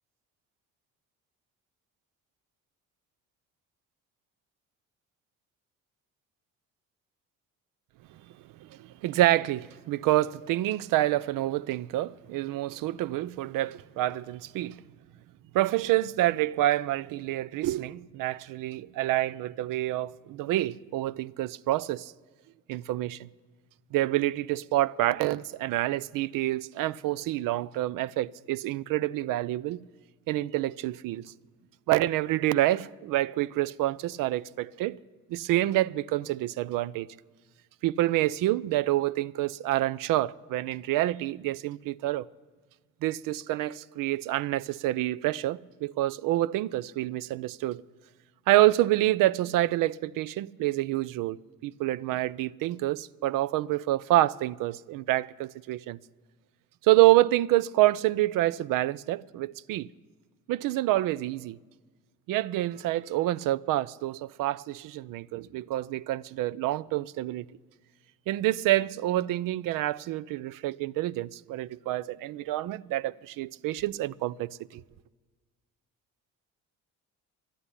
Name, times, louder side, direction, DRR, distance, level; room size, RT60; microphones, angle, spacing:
voice 1, 8.6-14.8 15.5-22.1 22.7-23.3 23.9-29.8 30.3-31.2 31.9-35.0 35.3-37.1 37.8-42.3 43.0-47.8 48.5-56.0 56.8-59.9 60.5-61.6 62.3-67.4 68.3-74.8, right 15 dB, 70° right, 0.5 m, -27 dB
12.0 x 10.0 x 9.7 m
supercardioid pair, 80°, 34 cm